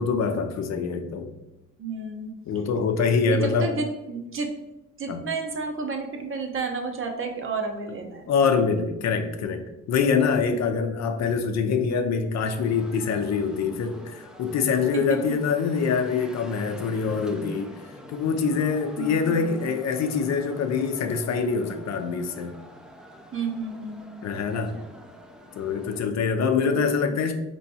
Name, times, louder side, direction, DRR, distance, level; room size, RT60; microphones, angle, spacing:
voice 1, 0.0-1.3 2.5-3.7 5.1-5.2 8.3-17.7 18.1-22.5 24.2-24.8 25.5-27.3, left 5 dB, 60° left, 6 dB, 0.6 m, -25 dB
voice 2, 1.8-2.3 3.2-4.5 5.0-8.2 19.0-19.6 23.3-24.0 26.6-26.9, right 4 dB, 45° right, 3 dB, 0.8 m, -31 dB
sound 1, 12.4-26.0, equal, ahead, 0.5 m, -45 dB
4.3 x 3.1 x 2.7 m, 0.95 s
cardioid pair, 90°, 30 cm